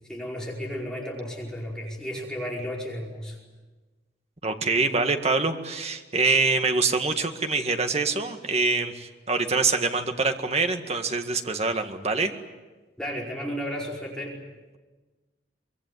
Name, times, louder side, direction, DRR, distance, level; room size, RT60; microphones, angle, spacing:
voice 1, 0.1-3.4 13.0-14.4, equal, 5° left, -3 dB, 5.0 m, -33 dB
voice 2, 4.4-12.3, right 3 dB, 40° right, 6 dB, 1.8 m, -25 dB
24.5 x 21.5 x 9.3 m, 1.2 s
head